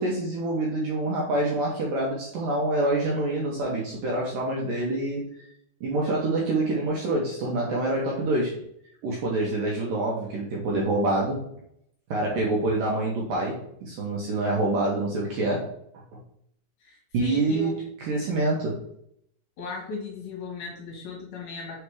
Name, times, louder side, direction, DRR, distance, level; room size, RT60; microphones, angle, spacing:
voice 1, 0.0-5.3 5.8-8.6 9.0-11.4 12.1-15.7 16.1-16.2 17.1-17.8 18.0-18.9, right 2 dB, 75° right, -3 dB, 2.1 m, -26 dB
voice 2, 16.8-17.7 19.6-21.8, left 5 dB, 70° left, -1 dB, 2.6 m, -37 dB
6.3 x 3.3 x 4.7 m, 0.71 s
omnidirectional pair, 5.1 m